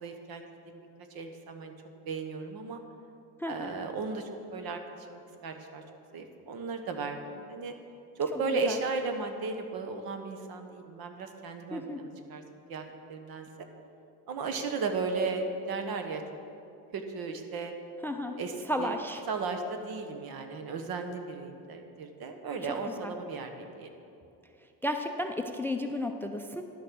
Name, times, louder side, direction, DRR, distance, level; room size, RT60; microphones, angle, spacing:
voice 1, 0.0-1.7 2.0-2.8 3.5-5.8 6.1-7.7 8.1-12.4 12.7-12.8 13.1-13.7 14.3-16.2 16.9-17.7 18.4-19.0 19.3-23.9, right 4 dB, 60° right, 6 dB, 1.2 m, -35 dB
voice 2, 3.4-3.7 8.7-8.8 11.7-12.0 18.0-18.4 18.7-19.2 23.0-23.1 24.8-26.6, left 1 dB, 5° left, 6 dB, 0.4 m, -33 dB
11.0 x 6.4 x 6.3 m, 2.6 s
cardioid pair, 100°, 41 cm